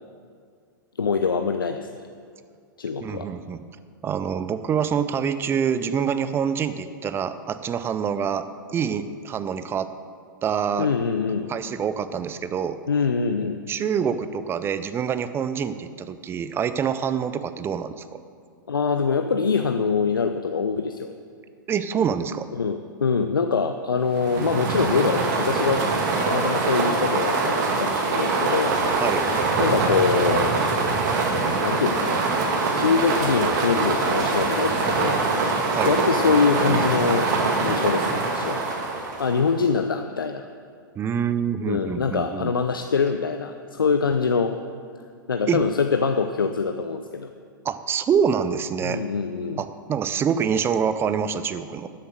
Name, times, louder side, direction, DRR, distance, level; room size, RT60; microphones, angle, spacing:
voice 1, 1.0-1.9 2.8-3.3 10.8-11.5 12.9-13.6 18.7-21.1 22.5-25.9 26.2-29.1 29.6-30.5 31.5-32.2 32.7-35.2 35.8-37.3 37.6-38.6 39.2-40.5 41.7-44.6 45.3-47.3 48.8-49.6, left 5 dB, 85° left, 7 dB, 0.5 m, -24 dB
voice 2, 3.0-3.6 4.0-9.9 10.4-10.9 11.5-12.8 13.7-18.2 21.7-22.5 29.0-29.2 35.7-36.0 41.0-42.5 45.5-45.6 47.6-49.0 49.6-51.9, right 7 dB, 20° right, 12 dB, 0.6 m, -26 dB
sound 1, 24.1-39.6, right 3 dB, 55° right, 2.1 m, -23 dB
12.5 x 7.4 x 6.4 m, 2.2 s
hypercardioid pair, 105°, 11 cm